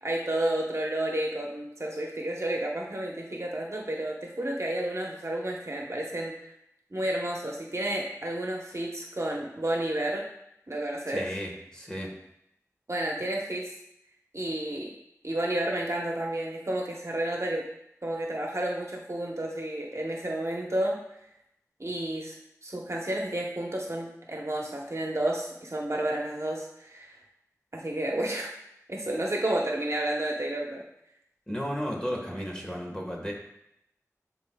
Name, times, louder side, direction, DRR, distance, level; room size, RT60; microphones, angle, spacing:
voice 1, 0.0-6.5 6.9-10.3 10.7-11.3 12.9-13.7 14.3-14.9 15.2-17.6 18.0-21.0 21.8-22.4 22.6-27.2 27.7-28.5 28.9-30.8, right 1 dB, 55° right, -1 dB, 1.0 m, -31 dB
voice 2, 11.1-12.1 31.5-33.3, equal, 15° left, -1 dB, 1.5 m, -34 dB
10.5 x 4.4 x 2.3 m, 0.79 s
wide cardioid pair, 50°, 6 cm